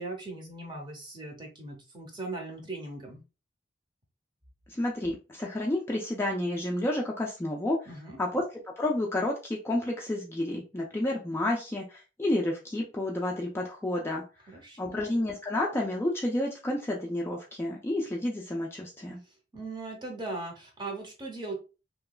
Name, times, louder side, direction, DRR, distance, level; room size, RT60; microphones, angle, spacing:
voice 1, 0.0-3.2 7.9-8.2 14.5-15.0 19.5-21.5, right 2 dB, 25° right, 0 dB, 0.7 m, -39 dB
voice 2, 4.7-7.9 8.2-8.4 8.8-14.2 14.8-19.2, left 1 dB, 15° left, -2 dB, 0.3 m, -30 dB
2.9 x 2.3 x 2.2 m, 0.31 s
head